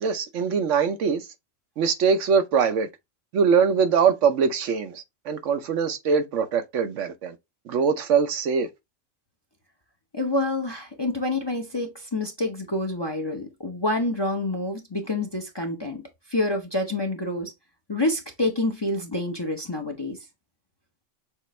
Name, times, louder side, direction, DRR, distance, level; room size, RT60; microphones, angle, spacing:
voice 1, 0.0-1.3 1.8-2.9 3.3-7.4 7.7-8.7, right 6 dB, 70° right, 1.0 m, -22 dB
voice 2, 10.1-16.0 16.3-17.5 17.9-20.2, left 2 dB, 25° left, 0.6 m, -27 dB
6.7 x 2.5 x 3.1 m
omnidirectional pair, 1.3 m